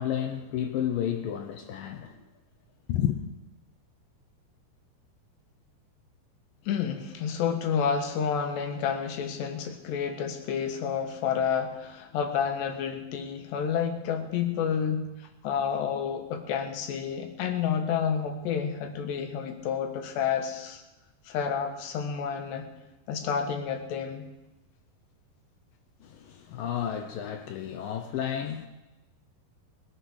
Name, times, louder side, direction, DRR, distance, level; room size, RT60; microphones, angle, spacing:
voice 1, 0.0-2.2 2.9-3.1 26.0-28.7, left 10 dB, 75° left, 2.2 m, -31 dB
voice 2, 6.7-20.8 21.3-22.7 23.1-24.3, left 7 dB, 90° left, 3.7 m, -30 dB
20.5 x 10.0 x 6.4 m
omnidirectional pair, 4.7 m